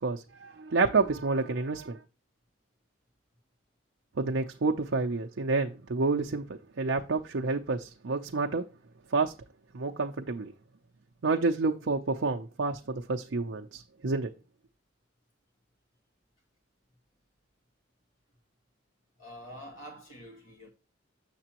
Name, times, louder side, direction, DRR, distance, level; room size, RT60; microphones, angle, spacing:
voice 1, 0.0-2.0 4.2-8.6 9.1-9.3 9.7-10.5 11.2-14.3, right 3 dB, 65° right, 0.6 m, -29 dB
voice 2, 19.2-20.7, equal, 85° left, 2.3 m, -46 dB
7.1 x 6.7 x 2.9 m
head